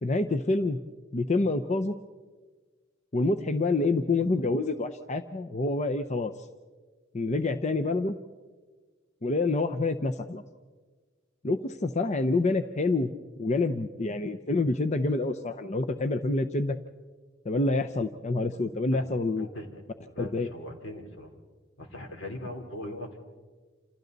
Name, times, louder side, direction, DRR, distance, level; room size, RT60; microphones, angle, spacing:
voice 1, 0.0-0.8 1.1-2.0 3.1-6.3 7.1-8.2 9.2-10.4 11.4-13.1 13.4-16.8 17.4-19.5 20.2-20.5, left 2 dB, 35° left, 7 dB, 0.7 m, -27 dB
voice 2, 19.4-19.7 20.1-21.3 21.8-23.2, left 1 dB, 80° left, 3 dB, 3.6 m, -40 dB
28.0 x 28.0 x 4.0 m, 1.4 s
head